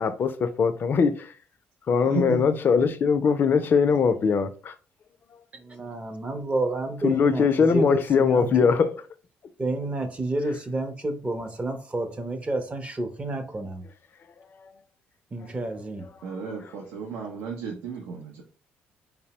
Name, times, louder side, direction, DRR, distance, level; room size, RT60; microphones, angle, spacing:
voice 1, 0.0-1.3 1.9-4.5 7.0-9.0, left 6 dB, 50° left, 0.3 m, -21 dB
voice 2, 2.0-2.5 3.9-4.0 16.2-18.4, right 4 dB, 90° right, 0.5 m, -33 dB
voice 3, 5.5-8.7 9.6-13.8 15.3-16.1, right 2 dB, 25° right, 0.5 m, -30 dB
2.8 x 2.0 x 2.8 m
supercardioid pair, 65°, 4 cm